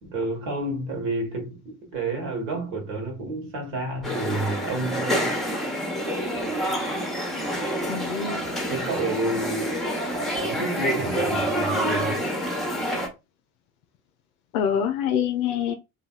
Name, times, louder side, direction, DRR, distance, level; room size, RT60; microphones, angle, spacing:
voice 1, 0.0-5.3 8.7-9.8 10.3-12.2, right 2 dB, 55° right, 1.6 m, -30 dB
sound 1, 4.0-13.1, equal, ahead, 0.9 m, -27 dB
voice 2, 7.9-8.4 14.5-15.7, left 8 dB, 50° left, 0.6 m, -25 dB
3.9 x 2.7 x 2.2 m
figure-of-eight pair, 65°, 43 cm